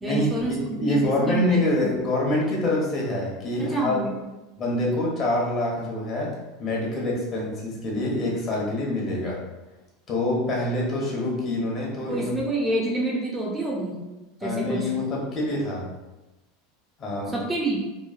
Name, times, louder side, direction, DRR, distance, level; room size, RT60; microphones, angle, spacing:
voice 1, 0.0-1.8 3.6-4.1 12.1-14.0 14.4-14.9 17.3-17.8, right 2 dB, 15° right, -3 dB, 0.5 m, -28 dB
voice 2, 0.6-4.1 4.6-6.3 6.6-9.4 10.1-12.3 14.4-15.9 17.0-17.3, left 1 dB, 40° left, -3 dB, 0.9 m, -26 dB
3.0 x 2.2 x 2.4 m, 1.1 s
hypercardioid pair, 105°, 0 cm